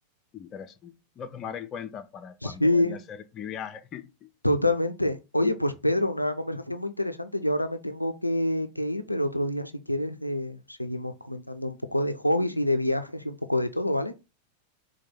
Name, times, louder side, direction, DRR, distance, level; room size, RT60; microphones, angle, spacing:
voice 1, 0.3-4.3, left 8 dB, 30° left, 0.5 m, -39 dB
voice 2, 2.4-3.0 4.4-14.1, left 1 dB, 85° left, 0.4 m, -27 dB
4.4 x 2.2 x 4.2 m
figure-of-eight pair, 90°, 0 cm